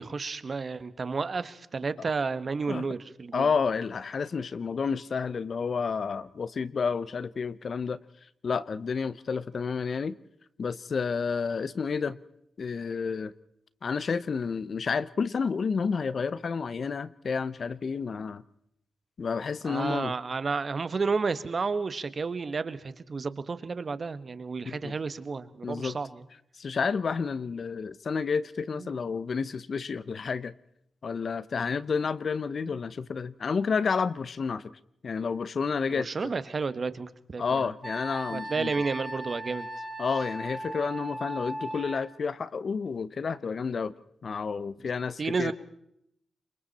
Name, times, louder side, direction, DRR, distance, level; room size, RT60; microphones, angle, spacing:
voice 1, 0.0-3.5 19.6-26.2 28.8-28.9 36.0-37.7 38.3-39.7 45.2-45.5, right 4 dB, 50° right, 1.4 m, -31 dB
voice 2, 3.3-8.0 8.4-10.2 10.6-12.2 12.6-13.3 13.8-18.4 19.2-20.1 24.6-24.9 25.6-26.0 26.6-30.5 31.0-34.7 35.0-36.1 37.4-38.7 40.0-43.9 44.2-45.5, left 5 dB, 60° left, 0.8 m, -30 dB
Wind instrument woodwind instrument, 37.8-42.0, right 1 dB, 15° right, 5.8 m, -37 dB
27.5 x 23.5 x 4.3 m
cardioid pair, 60°, 0 cm